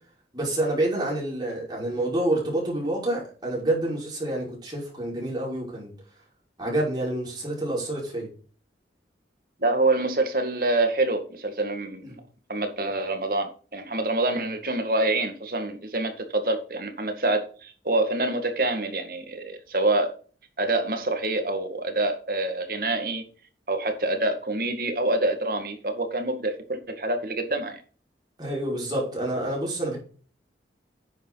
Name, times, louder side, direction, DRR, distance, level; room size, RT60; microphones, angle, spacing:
voice 1, 0.3-5.9 6.6-8.3 28.4-30.0, right 1 dB, 25° right, -4 dB, 5.6 m, -28 dB
voice 2, 9.6-12.2 12.5-20.1 20.6-23.2 23.7-27.8, right 2 dB, 55° right, 6 dB, 2.0 m, -26 dB
10.0 x 7.2 x 4.0 m, 0.39 s
head